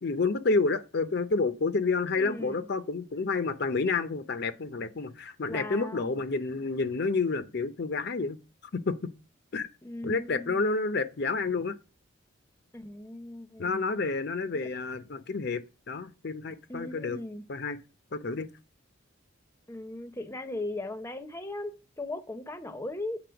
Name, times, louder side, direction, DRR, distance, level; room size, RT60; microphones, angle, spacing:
voice 1, 0.0-8.4 8.7-9.1 9.5-9.7 10.0-11.8 13.6-17.2 17.5-17.8 18.1-18.5, left 3 dB, 50° left, 0.6 m, -29 dB
voice 2, 2.1-2.6 5.5-6.2 9.8-10.6 12.7-13.8 14.5-14.7 16.7-17.4 19.7-23.2, left 2 dB, 10° left, 0.7 m, -38 dB
7.8 x 4.2 x 6.9 m
head